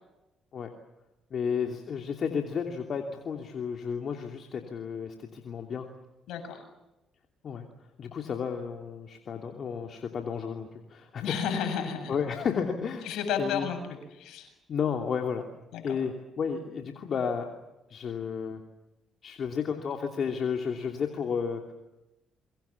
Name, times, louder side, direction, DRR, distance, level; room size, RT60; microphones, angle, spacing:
voice 1, 1.3-5.9 7.4-7.6 8.0-11.6 12.1-13.7 14.7-15.5 15.8-17.5 17.9-18.6 19.2-21.7, left 6 dB, 55° left, 3 dB, 2.9 m, -32 dB
voice 2, 6.3-6.6 11.2-12.2 13.0-13.8 14.2-14.5 15.7-16.0, left 7 dB, 75° left, 6 dB, 7.5 m, -32 dB
28.0 x 24.0 x 7.3 m, 0.96 s
supercardioid pair, 60°, 0 cm